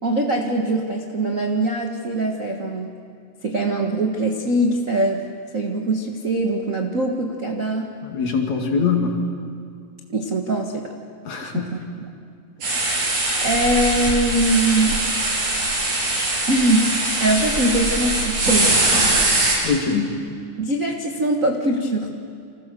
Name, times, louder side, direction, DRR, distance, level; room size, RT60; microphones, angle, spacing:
voice 1, 0.0-2.9 3.4-5.2 5.5-7.9 10.1-10.9 11.4-12.1 12.7-12.8 13.4-15.0 16.5-18.8 20.6-22.1, right 1 dB, 40° right, 1 dB, 1.2 m, -22 dB
voice 2, 8.0-9.2 11.3-11.8 19.6-20.1, left 5 dB, 60° left, 3 dB, 3.7 m, -22 dB
sound 1, 12.6-19.5, right 2 dB, 60° right, 8.0 m, -21 dB
29.0 x 26.0 x 6.9 m, 2.3 s
omnidirectional pair, 3.8 m